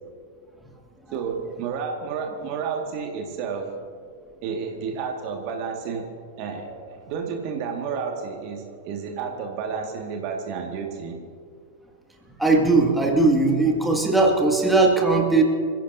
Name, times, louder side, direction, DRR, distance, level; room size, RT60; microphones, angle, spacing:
voice 1, 1.1-3.7 4.4-6.1 6.4-11.2, right 6 dB, 45° right, 2 dB, 2.0 m, -31 dB
voice 2, 12.4-15.4, right 3 dB, 5° right, -1 dB, 2.3 m, -19 dB
27.5 x 16.0 x 2.8 m, 2.1 s
figure-of-eight pair, 90°, 0 cm